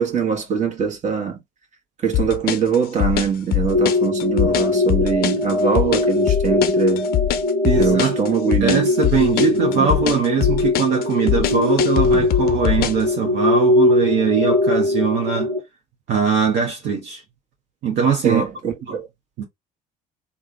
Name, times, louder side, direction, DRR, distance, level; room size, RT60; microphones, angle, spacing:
voice 1, 0.0-1.4 2.0-7.1 7.8-8.9 9.3-10.0 18.2-19.1, right 7 dB, 35° right, 1.4 m, -23 dB
sound 1, 2.1-13.1, left 15 dB, 50° left, 0.5 m, -22 dB
sound 2, 3.7-15.6, left 2 dB, 85° right, 1.1 m, -21 dB
voice 2, 7.6-8.1 8.6-15.5 16.1-17.2 17.8-18.4 18.9-19.0 19.4-19.5, right 6 dB, 55° right, 1.0 m, -21 dB
3.5 x 2.3 x 3.2 m
figure-of-eight pair, 55°, 21 cm